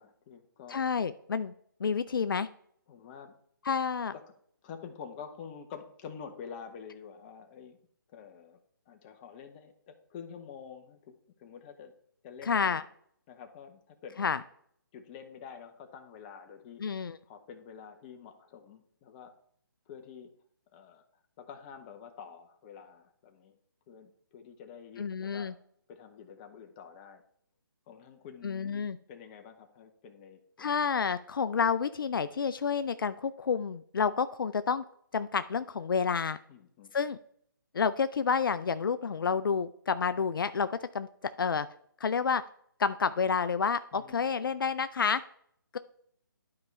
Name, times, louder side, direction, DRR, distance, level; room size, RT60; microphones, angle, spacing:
voice 1, 0.0-0.8 2.9-3.3 4.1-4.2 4.6-7.8 8.1-8.6 8.9-11.9 12.2-12.9 13.3-14.3 14.9-16.9 17.2-19.3 19.9-20.3 20.7-21.1 21.4-23.6 23.9-25.5 25.9-27.2 27.9-30.9 36.5-37.1 43.9-44.5, left 7 dB, 25° left, 6 dB, 0.9 m, -48 dB
voice 2, 0.7-1.5 1.8-2.5 3.7-4.1 12.4-12.8 14.2-14.4 16.8-17.2 25.0-25.5 28.4-29.0 30.6-34.8 35.1-36.4 36.9-37.2 37.7-41.1 41.4-41.7 42.0-42.4 42.8-45.2 45.7-45.8, left 6 dB, 70° left, 12 dB, 0.4 m, -29 dB
11.5 x 4.7 x 3.2 m, 0.65 s
figure-of-eight pair, 150°, 12 cm